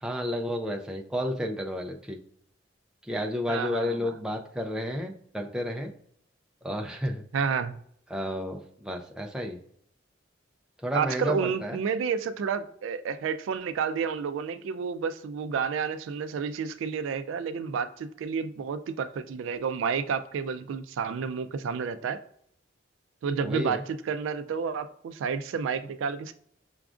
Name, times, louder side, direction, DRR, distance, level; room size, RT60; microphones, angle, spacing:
voice 1, 0.0-2.2 3.1-5.9 6.6-7.2 8.1-9.6 10.8-11.8 23.4-23.8, equal, 5° right, 0.3 m, -31 dB
voice 2, 3.5-4.1 7.3-7.8 10.9-22.2 23.2-26.3, right 6 dB, 85° right, 0.3 m, -30 dB
5.9 x 2.3 x 2.4 m
head